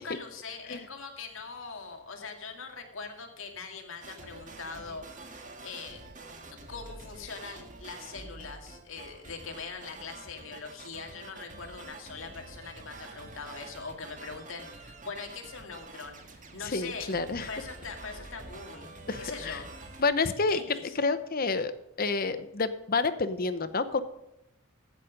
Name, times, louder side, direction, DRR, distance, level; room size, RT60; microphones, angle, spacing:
voice 1, 0.0-6.0 6.5-17.1 17.5-18.9 19.2-19.7 20.5-21.0, left 4 dB, 70° left, 3 dB, 2.2 m, -42 dB
sound 1, 4.0-20.0, right 2 dB, 40° right, 1.8 m, -47 dB
voice 2, 16.7-17.5 19.1-19.6 20.0-20.6 21.0-21.7 22.0-24.0, left 3 dB, 45° left, 12 dB, 0.8 m, -29 dB
15.5 x 7.4 x 5.2 m, 0.89 s
head